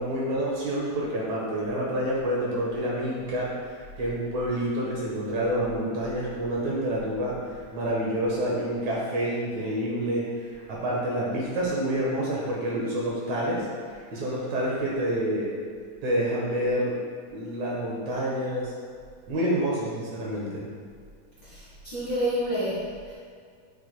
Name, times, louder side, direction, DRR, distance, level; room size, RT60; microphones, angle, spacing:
voice 1, 0.0-7.3 7.7-10.3 10.7-13.7 14.1-15.5 16.0-17.0 17.3-18.7 19.3-20.6, right 1 dB, 65° right, -5 dB, 2.3 m, -28 dB
voice 2, 21.4-23.1, equal, 50° left, -11 dB, 1.4 m, -29 dB
8.9 x 6.5 x 2.2 m, 2.1 s
omnidirectional pair, 4.0 m